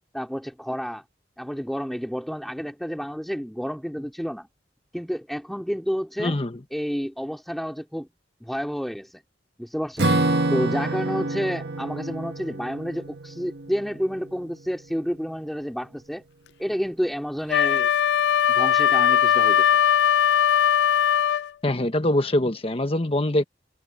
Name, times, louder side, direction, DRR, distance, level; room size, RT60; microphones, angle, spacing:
voice 1, 0.1-1.0 1.4-4.5 4.9-6.4 6.7-8.1 8.4-9.2 9.6-10.1 10.5-16.2 16.6-17.9 18.5-19.8, equal, ahead, 2.6 m, -30 dB
voice 2, 6.2-6.6 21.6-23.4, left 1 dB, 35° left, 1.3 m, -23 dB
Acoustic guitar / Strum, 10.0-14.8, right 2 dB, 70° right, 1.6 m, -27 dB
Wind instrument woodwind instrument, 17.5-21.5, left 9 dB, 70° left, 0.3 m, -19 dB
head